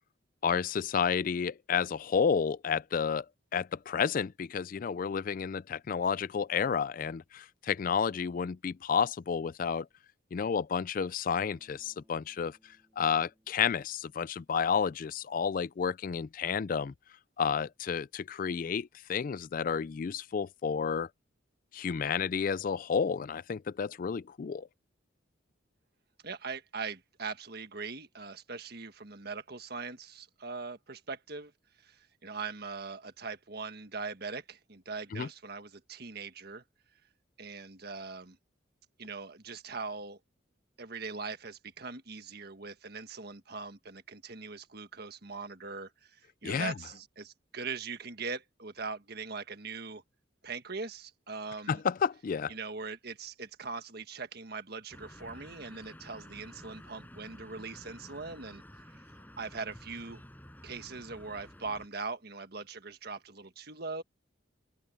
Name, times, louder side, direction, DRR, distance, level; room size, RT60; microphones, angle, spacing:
voice 1, 0.4-3.3 3.5-9.9 10.3-12.6 13.0-16.9 17.4-21.1 21.7-24.7 35.1-35.3 46.4-46.7 51.7-52.5, left 6 dB, 45° left, 0.3 m, -31 dB
Bass guitar, 11.4-15.4, equal, 10° right, 5.3 m, -70 dB
voice 2, 26.2-31.5 31.8-36.6 37.4-38.4 39.0-40.2 40.8-50.0 50.4-51.8 52.5-60.2 60.6-64.0, right 4 dB, 55° right, 1.6 m, -41 dB
sound 1, 54.9-61.9, equal, 10° left, 6.0 m, -51 dB
open air
head